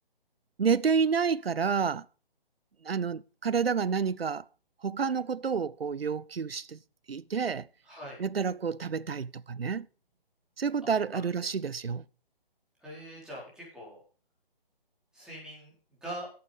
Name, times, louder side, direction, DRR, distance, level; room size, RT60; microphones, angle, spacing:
voice 1, 0.6-2.1 2.8-4.4 4.8-6.8 7.1-7.7 8.2-9.9 10.6-12.0, right 6 dB, 85° right, 0.6 m, -29 dB
voice 2, 7.8-8.2 12.8-14.0 15.1-15.7 16.0-16.3, right 1 dB, ahead, 4.6 m, -42 dB
10.5 x 8.6 x 5.2 m
figure-of-eight pair, 145°, 29 cm